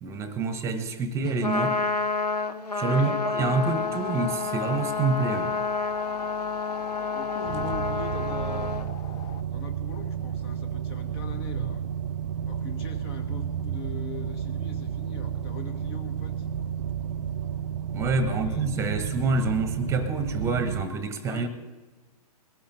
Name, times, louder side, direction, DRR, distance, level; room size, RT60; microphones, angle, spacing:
voice 1, 0.0-1.8 2.8-5.5 17.9-21.5, right 3 dB, 15° right, 1.3 m, -27 dB
Trumpet, 1.3-8.9, left 4 dB, 85° left, 1.3 m, -29 dB
voice 2, 2.8-3.2 7.0-8.8 9.5-11.9 12.4-16.4 18.2-18.7 21.2-21.5, left 6 dB, 40° left, 2.1 m, -42 dB
sound 1, 3.4-9.4, left 8 dB, 20° left, 0.7 m, -41 dB
sound 2, 7.4-20.8, right 8 dB, 45° right, 0.6 m, -31 dB
21.5 x 14.5 x 4.0 m
figure-of-eight pair, 120°, 20 cm